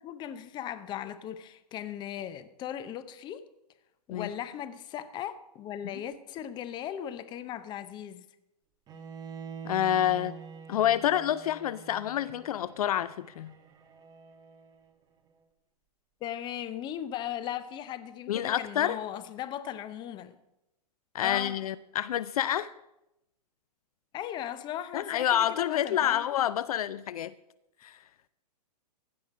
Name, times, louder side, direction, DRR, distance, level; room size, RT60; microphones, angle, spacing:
voice 1, 0.0-3.5 4.1-8.2 16.2-20.4 21.2-21.6 24.1-26.2, left 10 dB, 20° left, 0.7 m, -37 dB
Bowed string instrument, 8.9-14.9, right 6 dB, 20° right, 0.9 m, -46 dB
voice 2, 9.6-10.3 10.7-13.5 18.3-19.0 21.1-22.7 24.9-27.3 27.8-28.0, left 11 dB, 60° left, 0.5 m, -28 dB
15.5 x 5.8 x 6.3 m
hypercardioid pair, 130°, 21 cm